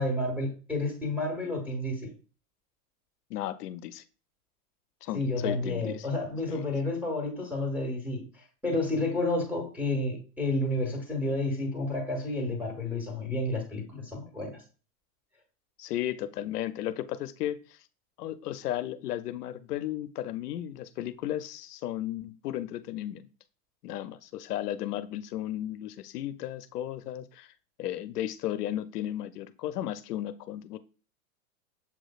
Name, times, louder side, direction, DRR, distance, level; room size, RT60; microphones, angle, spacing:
voice 1, 0.0-2.1 5.1-8.2 8.6-14.5, left 2 dB, 5° right, 1.4 m, -30 dB
voice 2, 3.3-4.0 5.0-6.1 6.5-6.6 15.8-17.8 18.2-23.3 23.8-27.5 27.8-30.8, left 12 dB, 80° left, 0.5 m, -34 dB
7.1 x 3.1 x 2.3 m
hypercardioid pair, 130°, 46 cm